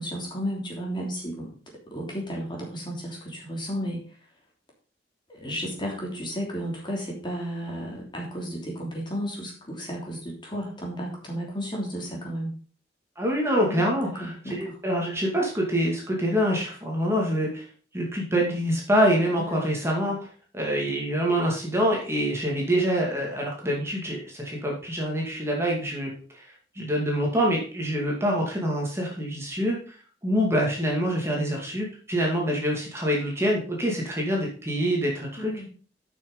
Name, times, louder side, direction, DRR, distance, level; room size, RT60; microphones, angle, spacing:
voice 1, 0.0-1.5 1.9-4.0 5.3-12.5 13.6-14.7 19.3-19.6 35.4-35.7, equal, 25° left, -1 dB, 3.1 m, -33 dB
voice 2, 13.2-17.7 17.9-20.3 20.5-30.0 30.2-35.5, equal, 15° right, -2 dB, 2.4 m, -26 dB
8.7 x 6.3 x 5.4 m, 0.41 s
head